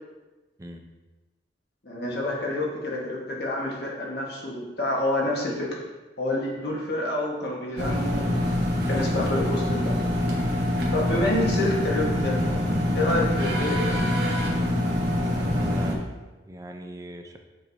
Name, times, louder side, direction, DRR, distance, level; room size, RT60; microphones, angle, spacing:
voice 1, 1.8-5.8 6.2-8.5 8.9-10.0 10.9-14.0, left 1 dB, 65° left, -3 dB, 1.4 m, -28 dB
sound 1, 7.8-16.0, left 1 dB, 65° right, 1.2 m, -25 dB
voice 2, 15.3-16.0 16.4-17.4, right 1 dB, 20° right, 4 dB, 0.5 m, -39 dB
7.6 x 4.6 x 2.7 m, 1.2 s
head